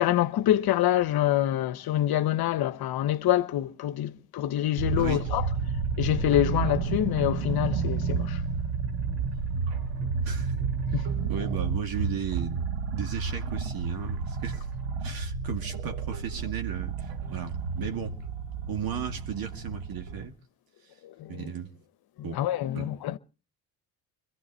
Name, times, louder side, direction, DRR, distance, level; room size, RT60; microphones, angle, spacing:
voice 1, 0.0-5.5 6.0-8.4 10.9-11.1 21.0-21.5 22.3-23.2, left 13 dB, 70° left, 0.9 m, -26 dB
sound 1, 4.8-20.2, right 5 dB, 85° right, 1.4 m, -31 dB
voice 2, 5.0-5.3 10.2-10.5 11.3-14.6 15.0-18.2 18.7-20.3 21.3-21.8 22.2-22.4 22.7-22.9, right 7 dB, 65° right, 2.3 m, -35 dB
22.5 x 14.5 x 4.4 m
supercardioid pair, 70°, 39 cm